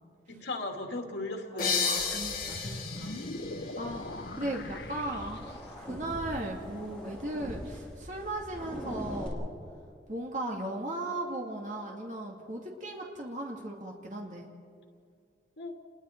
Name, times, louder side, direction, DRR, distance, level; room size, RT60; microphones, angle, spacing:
voice 1, 0.3-2.2 15.6-15.7, left 2 dB, 90° left, 2 dB, 2.6 m, -37 dB
voice 2, 1.5-3.2 3.8-5.4 5.8-9.5 10.1-14.5, right 1 dB, 45° right, 0 dB, 2.3 m, -37 dB
sound 1, 1.6-5.0, left 5 dB, 50° left, 5.9 m, -34 dB
sound 2, 2.0-5.9, left 2 dB, 70° left, 1.1 m, -41 dB
sound 3, 3.9-9.3, equal, 5° left, 4.5 m, -43 dB
29.0 x 21.0 x 4.6 m, 2.3 s
head